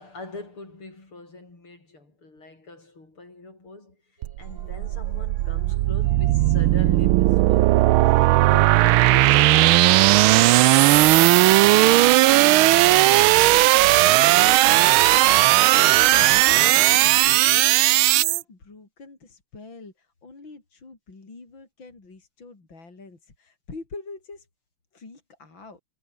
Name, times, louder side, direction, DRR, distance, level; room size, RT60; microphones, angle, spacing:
voice 1, 0.0-4.0 4.4-7.8 8.4-10.5, left 2 dB, 75° left, 8.0 m, -41 dB
sound 1, 4.2-9.3 11.8-15.8, right 3 dB, 60° right, 6.0 m, -50 dB
sound 2, 4.2-18.4, right 17 dB, 80° right, 1.4 m, -17 dB
voice 2, 10.9-24.5 24.9-25.8, left 3 dB, 60° left, 5.5 m, -46 dB
omnidirectional pair, 2.4 m